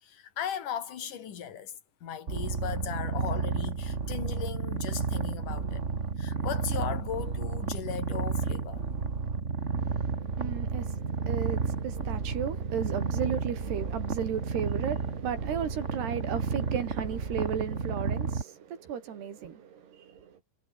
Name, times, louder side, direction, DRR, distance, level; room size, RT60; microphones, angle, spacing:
voice 1, 0.0-5.8 6.2-8.8, left 9 dB, 55° left, 4.0 m, -37 dB
Purr, 2.3-18.4, right 4 dB, 35° right, 1.1 m, -32 dB
voice 2, 9.8-20.4, right 8 dB, 85° right, 5.3 m, -35 dB
omnidirectional pair, 4.6 m